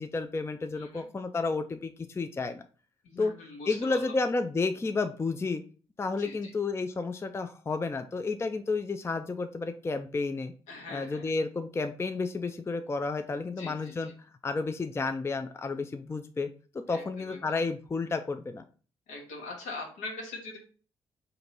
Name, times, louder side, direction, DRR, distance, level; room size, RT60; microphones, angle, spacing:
voice 1, 0.0-2.6 3.2-3.3 3.7-5.6 6.0-10.5 10.9-14.1 14.4-16.5 16.7-18.6, left 3 dB, 20° left, 7 dB, 0.4 m, -31 dB
voice 2, 0.7-1.0 3.0-4.1 6.2-6.5 10.7-11.3 13.5-14.1 16.9-17.6 19.1-20.6, left 3 dB, 70° left, 0 dB, 1.2 m, -42 dB
3.8 x 2.6 x 4.3 m, 0.40 s
hypercardioid pair, 40°, 13 cm